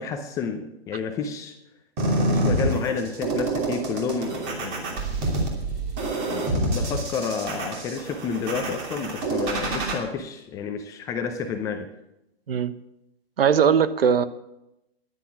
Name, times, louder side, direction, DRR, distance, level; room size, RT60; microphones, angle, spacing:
voice 1, 0.0-1.6 2.2-5.0 6.3-11.9, left 5 dB, 10° left, 6 dB, 0.5 m, -30 dB
sound 1, 2.0-9.9, right 2 dB, 30° right, 2.8 m, -27 dB
voice 2, 13.4-14.2, right 7 dB, 65° right, 13 dB, 1.0 m, -20 dB
11.0 x 9.7 x 7.1 m, 0.87 s
hypercardioid pair, 140°, 32 cm